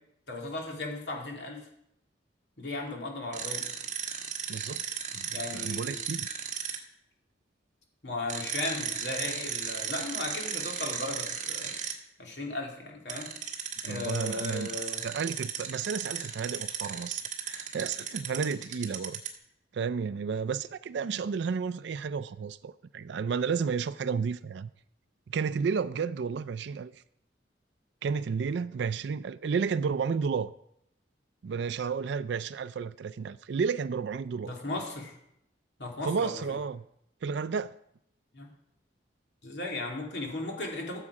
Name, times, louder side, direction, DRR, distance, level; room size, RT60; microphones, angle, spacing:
voice 1, 0.3-1.7 2.6-3.7 5.3-6.0 8.0-11.7 12.2-13.3 13.8-15.0 34.4-35.1 35.8-36.6 38.3-38.5 39.4-41.0, left 2 dB, 65° left, 2.5 m, -36 dB
sound 1, 3.3-6.8 8.3-11.9 13.1-19.4, right 8 dB, 40° right, 1.4 m, -35 dB
voice 2, 4.5-4.8 5.1-6.3 13.9-14.7 15.0-19.2 19.7-24.7 25.3-26.9 28.0-30.5 31.4-34.5 36.0-36.8 37.2-37.8, right 5 dB, 65° right, 0.4 m, -32 dB
14.0 x 7.2 x 4.9 m
head